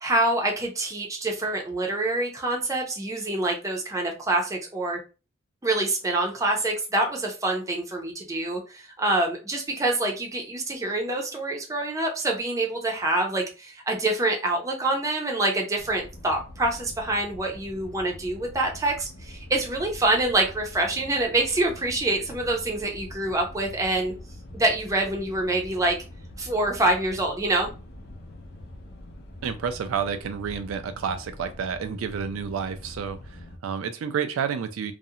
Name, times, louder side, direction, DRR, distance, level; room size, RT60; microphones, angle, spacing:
voice 1, 0.0-5.0 5.6-24.1 24.5-26.0 26.4-27.7, right 2 dB, 15° right, 1 dB, 0.5 m, -26 dB
sound 1, 15.8-33.6, left 1 dB, 50° left, 0.4 m, -44 dB
voice 2, 29.4-34.9, right 7 dB, 85° right, 8 dB, 0.3 m, -30 dB
2.4 x 2.0 x 2.7 m, 0.32 s
head